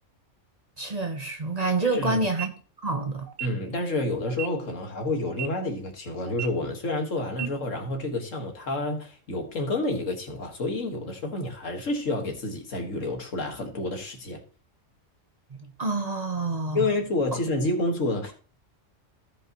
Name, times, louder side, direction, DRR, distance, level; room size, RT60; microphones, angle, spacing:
voice 1, 0.8-2.5 2.8-3.3 15.8-16.9, right 3 dB, 35° right, 0.9 m, -27 dB
voice 2, 1.8-2.2 3.4-14.4 16.7-18.3, left 2 dB, 80° left, 2.1 m, -29 dB
sound 1, 2.3-2.5 3.3-3.5 4.3-4.5 5.3-5.5 6.3-6.5 7.3-7.5, right 11 dB, 80° right, 1.3 m, -34 dB
16.0 x 5.6 x 3.0 m
omnidirectional pair, 1.3 m